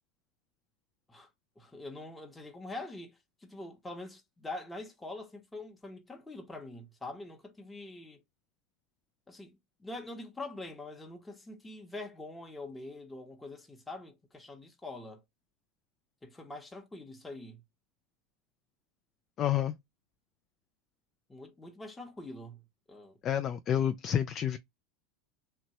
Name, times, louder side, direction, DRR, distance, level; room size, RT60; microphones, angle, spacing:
voice 1, 1.6-8.2 9.3-15.2 16.2-17.6 21.3-22.6 22.9-23.2, left 2 dB, 10° left, 0.8 m, -44 dB
voice 2, 19.4-19.7 23.2-24.6, left 10 dB, 40° left, 0.3 m, -29 dB
3.0 x 2.1 x 2.8 m
hypercardioid pair, 105°, 0 cm